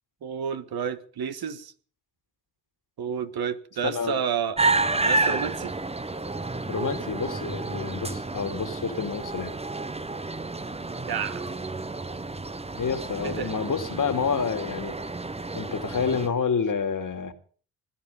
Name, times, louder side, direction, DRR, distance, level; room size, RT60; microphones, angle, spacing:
voice 1, 0.2-1.7 3.0-4.6 5.1-5.7 11.0-11.4 13.2-13.5, right 8 dB, 55° right, 1.6 m, -30 dB
voice 2, 3.8-4.2 6.7-9.5 12.7-15.0 15.5-17.3, left 6 dB, 45° left, 2.6 m, -28 dB
sound 1, 4.6-16.3, right 3 dB, 15° right, 1.1 m, -30 dB
20.0 x 11.5 x 5.5 m
supercardioid pair, 50°, 43 cm